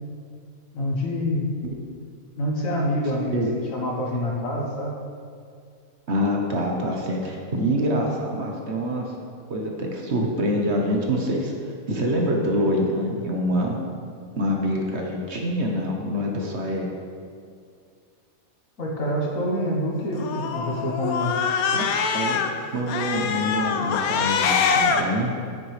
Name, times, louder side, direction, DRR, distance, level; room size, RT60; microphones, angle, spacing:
voice 1, 0.7-1.5 2.4-4.9 18.8-21.4, equal, 70° left, -2 dB, 1.8 m, -26 dB
voice 2, 6.1-9.1 9.5-13.8 14.4-16.9 21.7-21.8 22.1-22.4 22.7-25.3, equal, 55° right, 0 dB, 1.2 m, -25 dB
Cat, 20.2-22.5 22.9-25.0, left 6 dB, 85° left, 1.1 m, -24 dB
9.2 x 9.0 x 3.3 m, 2.2 s
omnidirectional pair, 1.5 m